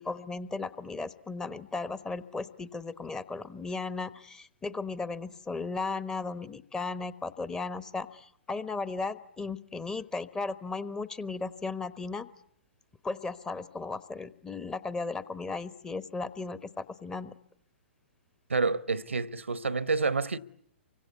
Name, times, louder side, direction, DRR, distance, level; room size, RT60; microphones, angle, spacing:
voice 1, 0.0-12.3 13.0-17.3, left 3 dB, 10° left, 1.1 m, -36 dB
voice 2, 18.5-20.4, right 4 dB, 75° right, 1.1 m, -28 dB
28.5 x 24.5 x 8.2 m
figure-of-eight pair, 115°, 7 cm